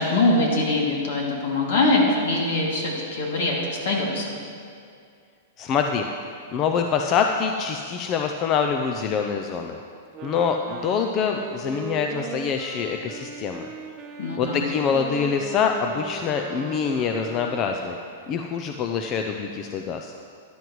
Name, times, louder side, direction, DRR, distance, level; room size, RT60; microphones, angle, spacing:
voice 1, 0.0-4.2 14.2-14.7, left 2 dB, 60° left, -2 dB, 2.5 m, -23 dB
voice 2, 5.6-6.1 6.5-9.8 10.2-13.7 14.4-18.0 18.3-20.1, left 6 dB, 25° left, 4 dB, 0.4 m, -25 dB
Wind instrument woodwind instrument, 10.1-18.0, right 4 dB, 25° right, 0.8 m, -38 dB
14.0 x 11.0 x 3.1 m, 2.3 s
supercardioid pair, 160°, 0 cm